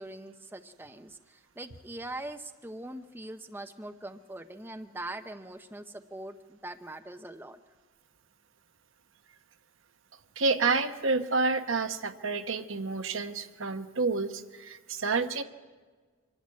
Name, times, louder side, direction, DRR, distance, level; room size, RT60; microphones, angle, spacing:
voice 1, 0.0-7.6, right 1 dB, 10° right, 8 dB, 0.6 m, -42 dB
voice 2, 10.4-15.4, right 4 dB, 65° right, 8 dB, 1.0 m, -29 dB
25.0 x 11.5 x 9.5 m, 1.4 s
head